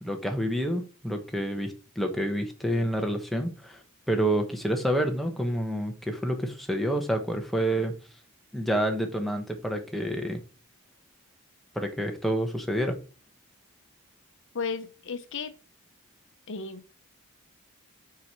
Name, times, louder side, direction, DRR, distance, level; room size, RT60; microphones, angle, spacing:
voice 1, 0.0-3.8 4.1-8.0 8.5-10.4 11.7-13.0, right 1 dB, ahead, 0.9 m, -28 dB
voice 2, 14.5-15.5 16.5-16.9, left 5 dB, 60° left, 0.7 m, -34 dB
6.8 x 4.8 x 4.4 m
head